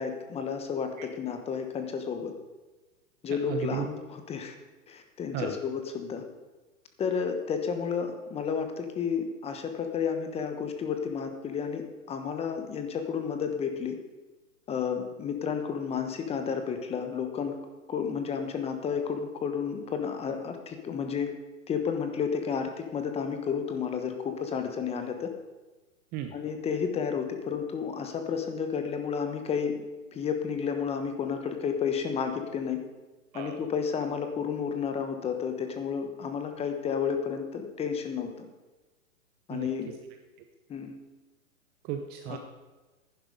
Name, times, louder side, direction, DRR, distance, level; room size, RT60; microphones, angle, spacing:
voice 1, 0.0-2.3 3.2-4.5 4.9-6.2 7.0-14.0 14.7-17.6 17.9-21.3 21.7-25.3 26.3-29.8 30.1-32.8 33.3-38.5 39.5-39.9 40.7-40.9 42.3-42.4, left 6 dB, 15° left, 6 dB, 1.1 m, -31 dB
voice 2, 3.3-3.9 5.3-5.6 26.1-26.3 33.3-33.7 39.5-39.9 41.8-42.4, right 10 dB, 20° right, 6 dB, 0.7 m, -35 dB
11.0 x 10.0 x 5.3 m, 1.2 s
hypercardioid pair, 135°, 42 cm